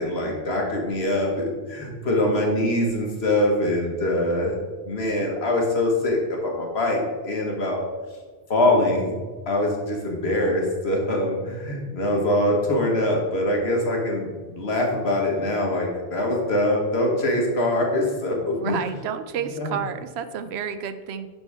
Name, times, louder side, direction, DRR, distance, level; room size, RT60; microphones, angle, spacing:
voice 1, 0.0-7.8 8.5-9.1 9.5-18.8 19.5-19.8, left 1 dB, 80° left, 0 dB, 1.7 m, -23 dB
voice 2, 18.5-21.3, right 8 dB, 90° right, 10 dB, 0.8 m, -30 dB
11.0 x 4.4 x 3.5 m, 1.4 s
omnidirectional pair, 1.0 m